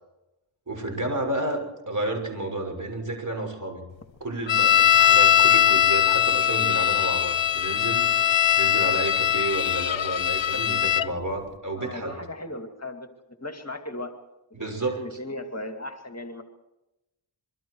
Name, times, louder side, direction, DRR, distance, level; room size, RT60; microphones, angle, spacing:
voice 1, 0.7-1.6 1.9-3.8 4.2-12.2 14.5-15.2, right 2 dB, 40° right, 4 dB, 6.3 m, -31 dB
sound 1, 4.5-11.1, left 11 dB, 70° left, 0.8 m, -21 dB
voice 2, 11.7-13.1 13.4-14.2 15.0-16.4, left 2 dB, 30° left, 5 dB, 2.4 m, -36 dB
26.0 x 23.5 x 4.8 m, 0.93 s
wide cardioid pair, 65°, 47 cm